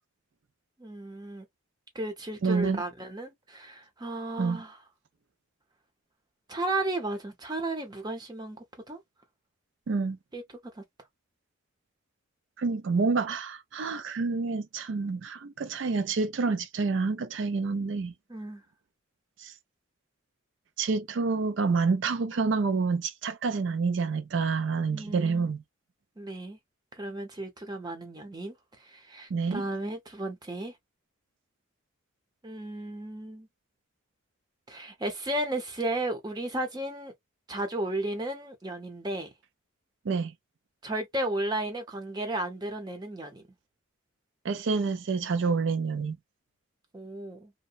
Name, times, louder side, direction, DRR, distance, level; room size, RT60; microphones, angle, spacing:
voice 1, 0.8-1.5 1.9-4.8 6.5-9.0 10.3-10.4 10.8-10.9 18.3-18.6 24.9-25.5 26.2-26.6 27.0-30.7 32.4-33.5 34.7-37.1 37.5-39.3 40.8-43.4 46.9-47.5, right 1 dB, 20° right, 0.7 m, -34 dB
voice 2, 2.4-2.8 4.4-4.6 9.9-10.2 12.6-18.1 19.4-19.5 20.8-25.6 29.3-29.6 40.1-40.3 44.4-46.2, right 4 dB, 60° right, 0.4 m, -28 dB
2.8 x 2.1 x 2.4 m
head